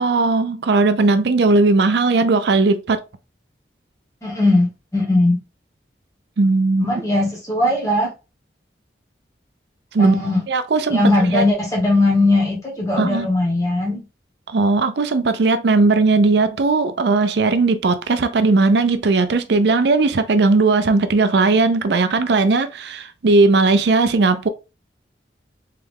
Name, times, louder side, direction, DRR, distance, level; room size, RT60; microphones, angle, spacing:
voice 1, 0.0-3.0 6.4-6.9 9.9-10.1 10.5-11.0 11.3-11.4 13.0-13.3 14.5-24.5, right 3 dB, 70° right, 0.5 m, -17 dB
voice 2, 4.2-5.4 6.8-8.1 10.0-10.4 10.9-14.0, left 2 dB, 15° left, 1.4 m, -19 dB
3.5 x 3.3 x 3.5 m
head